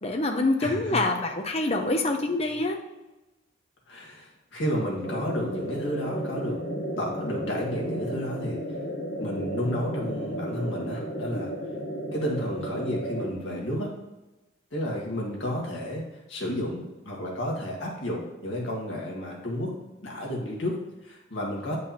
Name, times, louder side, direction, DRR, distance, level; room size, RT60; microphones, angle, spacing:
voice 1, 0.0-2.8, left 2 dB, 30° left, 4 dB, 0.7 m, -26 dB
voice 2, 0.6-1.0 3.9-6.6 6.9-8.8 9.2-11.5 12.1-13.9 14.7-21.8, equal, 80° left, -3 dB, 1.9 m, -32 dB
sound 1, 5.0-13.3, equal, 50° left, 1.1 m, -33 dB
8.5 x 5.3 x 2.9 m, 1.0 s
head